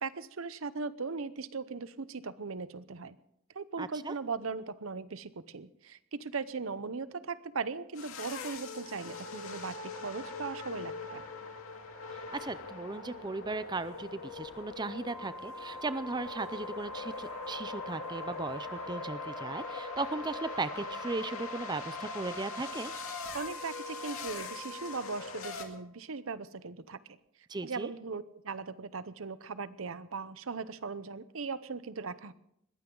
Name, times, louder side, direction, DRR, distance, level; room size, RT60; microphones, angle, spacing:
voice 1, 0.0-3.2 3.5-11.2 23.3-27.2 27.6-32.3, right 4 dB, 80° right, 15 dB, 0.8 m, -39 dB
voice 2, 3.8-4.1 12.1-22.9 27.5-27.9, right 3 dB, 20° right, 13 dB, 0.5 m, -37 dB
sound 1, 7.9-25.6, left 4 dB, 85° left, 2.3 m, -42 dB
Organ, 15.1-25.8, right 1 dB, ahead, 0.9 m, -46 dB
21.0 x 15.5 x 3.9 m, 0.74 s
head